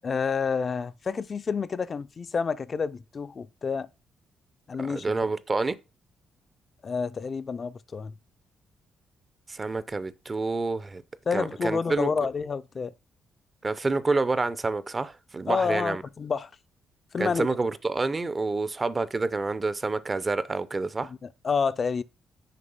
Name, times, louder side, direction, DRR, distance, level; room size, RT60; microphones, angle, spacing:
voice 1, 0.0-3.9 4.7-5.1 6.8-8.1 11.3-12.9 15.5-16.5 17.1-17.5 21.1-22.0, left 5 dB, 40° left, 0.4 m, -29 dB
voice 2, 4.8-5.7 9.5-11.0 11.3-12.1 13.6-16.0 17.2-21.1, right 3 dB, 25° right, 0.5 m, -28 dB
6.7 x 5.2 x 5.4 m
cardioid pair, 110°, 0 cm